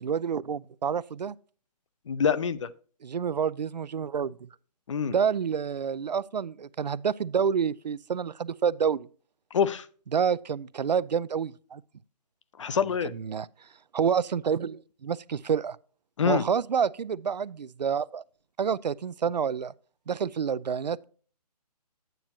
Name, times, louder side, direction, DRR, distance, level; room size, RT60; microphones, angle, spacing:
voice 1, 0.0-1.4 3.0-4.5 5.1-9.1 10.1-11.8 12.7-12.8 13.1-13.5 13.9-15.8 16.2-18.2 18.6-19.7 20.1-21.0, right 7 dB, 85° right, 0.4 m, -28 dB
voice 2, 2.1-2.7 4.9-5.1 9.5-9.9 12.6-13.1 16.2-16.4, left 7 dB, 50° left, 0.5 m, -25 dB
10.5 x 9.1 x 2.8 m
figure-of-eight pair, 150°, 21 cm